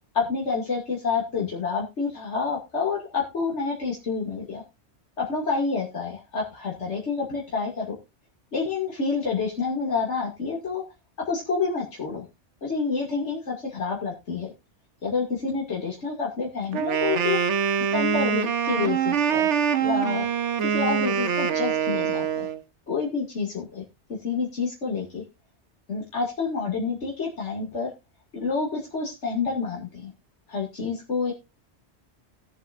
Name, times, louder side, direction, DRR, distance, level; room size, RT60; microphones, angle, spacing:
voice 1, 0.1-4.6 5.2-7.9 8.5-10.8 11.3-12.2 12.6-14.5 15.0-17.4 17.9-20.3 20.6-22.5 22.9-23.8 24.2-25.2 25.9-27.9 28.3-30.1 30.5-31.3, left 5 dB, 85° left, -3 dB, 3.0 m, -28 dB
Wind instrument woodwind instrument, 16.7-22.6, right 8 dB, 85° right, 1.3 m, -24 dB
19.5 x 7.4 x 2.6 m, 0.25 s
omnidirectional pair, 1.2 m